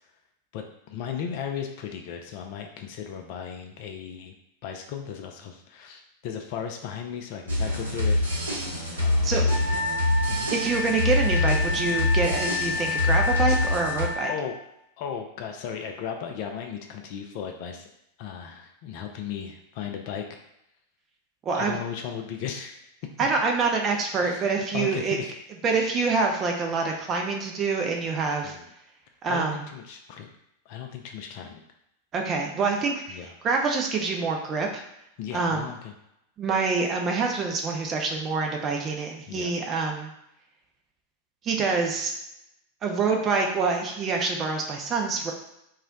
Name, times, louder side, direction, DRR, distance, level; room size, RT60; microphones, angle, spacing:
voice 1, 0.5-4.3 4.6-8.2 9.0-9.9 10.3-10.5 14.2-14.6 15.0-17.9 18.2-20.4 21.5-22.8 23.2-23.3 24.2-24.5 24.7-25.4 28.4-28.7 29.3-30.3 30.7-31.6 33.1-33.3 35.2-35.9 39.3-39.6, left 7 dB, 45° left, 3 dB, 0.4 m, -36 dB
sound 1, 7.5-14.1, left 2 dB, 75° right, 0.8 m, -25 dB
Wind instrument woodwind instrument, 9.5-14.4, left 4 dB, 65° left, 0.8 m, -30 dB
voice 2, 10.5-14.3 21.5-21.8 23.2-25.2 25.6-28.5 29.2-29.6 32.1-33.2 33.4-34.7 35.3-35.7 36.4-40.1 41.4-42.1 42.8-45.3, right 4 dB, 25° right, 1 dB, 0.5 m, -26 dB
2.3 x 2.0 x 3.9 m, 0.79 s
figure-of-eight pair, 90°, 0 cm